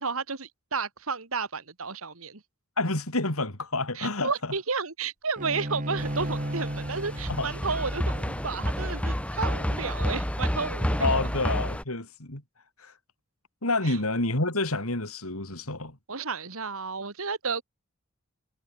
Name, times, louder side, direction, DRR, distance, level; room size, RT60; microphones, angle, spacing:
voice 1, 0.0-2.4 3.9-11.1 13.8-14.0 16.1-17.6, right 4 dB, 75° right, 2.1 m, -32 dB
voice 2, 2.8-4.5 7.3-7.5 11.0-12.4 12.8-12.9 13.6-15.9, left 2 dB, 80° left, 5.1 m, -28 dB
Bowed string instrument, 5.4-10.7, right 1 dB, 35° right, 2.0 m, -36 dB
sound 1, 6.0-11.8, equal, 5° left, 2.0 m, -30 dB
head